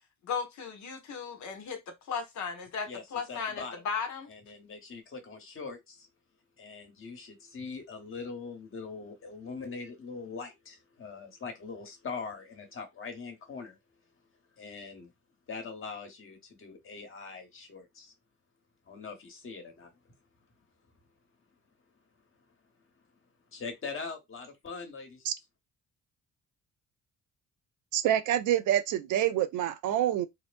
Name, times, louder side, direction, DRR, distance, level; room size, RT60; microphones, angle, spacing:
voice 1, 0.2-4.3, left 6 dB, 70° left, 0.9 m, -36 dB
voice 2, 3.3-3.7 4.3-6.1 6.6-13.8 14.6-15.1 15.5-18.1 18.9-20.1 23.5-25.3, left 4 dB, 45° left, 1.1 m, -42 dB
voice 3, 27.9-30.3, right 11 dB, 80° right, 0.5 m, -27 dB
2.8 x 2.1 x 2.5 m
cardioid pair, 90°, 30 cm